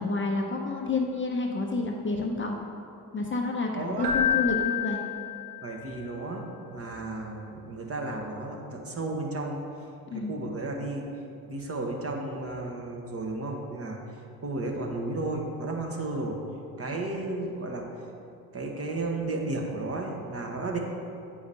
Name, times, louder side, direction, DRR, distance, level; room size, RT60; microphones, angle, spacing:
voice 1, 0.0-2.6 3.1-5.0 10.1-10.3, left 3 dB, 25° left, 1 dB, 0.6 m, -29 dB
voice 2, 3.7-4.1 5.6-9.6 10.1-11.1 11.5-14.0 14.4-16.4 16.8-17.9 18.5-20.8, right 2 dB, 30° right, 1 dB, 1.0 m, -33 dB
Keyboard (musical), 4.0-5.9, left 9 dB, 85° right, 0.9 m, -28 dB
8.3 x 5.0 x 2.7 m, 2.6 s
hypercardioid pair, 60°, 46 cm